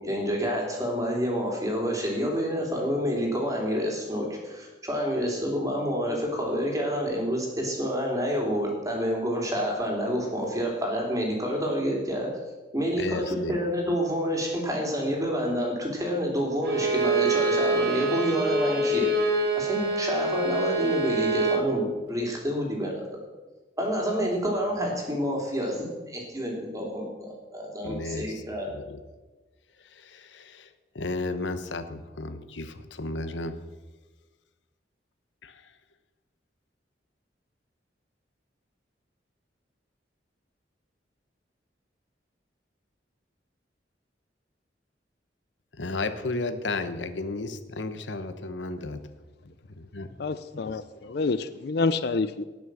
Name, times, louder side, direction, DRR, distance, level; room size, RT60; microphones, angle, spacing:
voice 1, 0.0-12.3 12.7-19.1 19.5-23.0 23.8-28.7, equal, 20° right, 3.1 m, -28 dB
voice 2, 13.0-13.5 27.8-28.4 28.7-29.0 29.9-30.7 30.9-33.6 35.4-35.6 45.8-49.0 49.8-50.1 51.1-51.2, left 2 dB, 90° left, 1.0 m, -33 dB
Bowed string instrument, 16.6-21.7, right 2 dB, 60° right, 2.0 m, -26 dB
voice 3, 50.2-52.4, left 3 dB, 60° left, 0.5 m, -28 dB
18.5 x 6.3 x 6.2 m
head